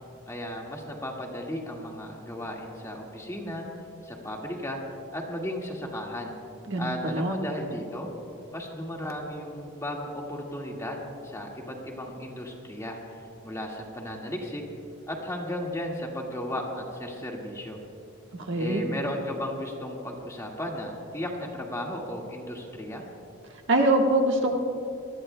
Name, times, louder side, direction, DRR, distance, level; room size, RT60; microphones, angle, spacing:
voice 1, 0.3-3.6 4.0-4.8 5.1-6.4 6.8-8.1 8.5-14.6 15.1-17.8 18.6-23.0, left 1 dB, 15° left, -1 dB, 1.8 m, -35 dB
voice 2, 6.7-7.4 18.5-18.8 23.7-24.6, right 1 dB, 65° right, 1 dB, 1.4 m, -23 dB
25.0 x 19.5 x 2.2 m, 2.5 s
head